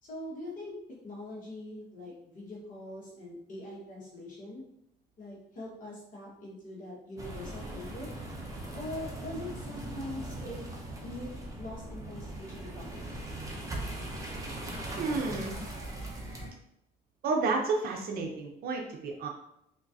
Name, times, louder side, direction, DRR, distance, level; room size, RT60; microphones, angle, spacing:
voice 1, 0.0-4.6 5.2-8.1 8.7-10.6 11.0-13.2, left 1 dB, 50° left, -4 dB, 1.4 m, -43 dB
sound 1, 7.2-16.5, right 1 dB, 20° right, 0.7 m, -40 dB
voice 2, 15.0-15.6 17.2-19.3, right 4 dB, 65° right, 1 dB, 0.6 m, -31 dB
3.6 x 3.0 x 2.7 m, 0.78 s
cardioid pair, 110°, 17 cm